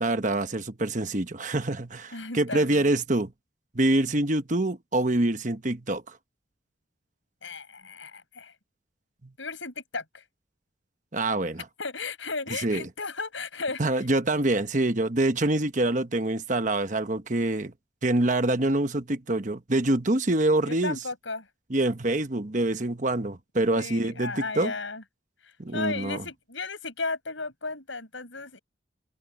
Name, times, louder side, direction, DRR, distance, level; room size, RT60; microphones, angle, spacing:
voice 1, 0.0-3.3 3.7-6.2 9.2-9.3 11.1-11.6 12.6-12.8 13.8-17.7 18.0-21.0 21.7-24.7 25.6-26.2, right 2 dB, 40° right, 1.1 m, -25 dB
voice 2, 2.1-2.9 7.4-8.5 9.4-10.2 11.8-14.1 20.6-21.5 23.7-25.0 25.4-28.6, left 3 dB, 75° left, 6.8 m, -35 dB
head